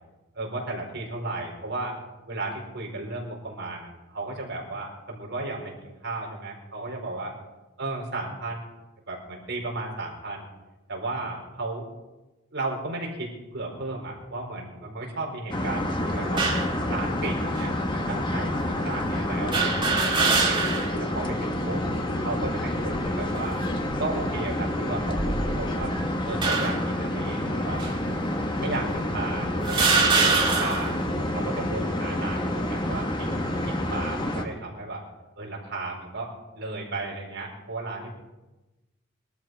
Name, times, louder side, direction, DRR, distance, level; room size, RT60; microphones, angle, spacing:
voice 1, 0.3-2.0 2.3-7.3 7.8-8.7 9.1-10.5 10.9-11.9 12.5-16.4 16.9-20.6 21.0-21.8 22.2-23.6 24.0-25.9 26.2-27.8 28.6-29.9 30.4-30.9 31.3-33.3 33.7-35.0 35.4-38.1, right 2 dB, 55° right, -1 dB, 4.3 m, -34 dB
sound 1, 15.5-34.4, left 1 dB, 20° left, 1.3 m, -28 dB
sound 2, 16.4-16.8 17.6-17.7 19.5-21.0 21.4-21.5 22.6-23.1 23.8-24.0 25.0-25.8 26.4-26.9 27.8-27.9 28.8-28.9 29.6-31.0, right 4 dB, 25° right, 2.3 m, -24 dB
21.5 x 13.0 x 4.6 m, 1.1 s
head